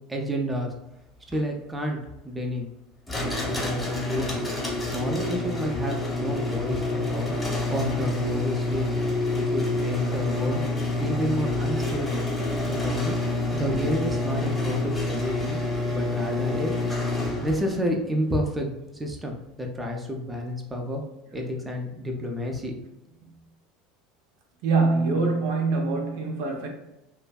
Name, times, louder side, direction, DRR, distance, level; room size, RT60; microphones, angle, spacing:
voice 1, 0.1-0.7 1.3-2.0 2.2-2.7 3.2-4.4 4.9-7.3 7.7-8.9 9.3-10.6 11.0-12.3 12.7-13.1 13.5-15.6 15.9-16.7 17.4-18.7 19.0-21.0 21.3-22.8, equal, 15° right, 0.5 m, -30 dB
sound 1, 3.1-17.8, left 2 dB, 15° left, 1.0 m, -28 dB
voice 2, 24.6-26.7, right 3 dB, 65° right, 0.5 m, -24 dB
2.5 x 2.2 x 2.3 m
hypercardioid pair, 80°, 0 cm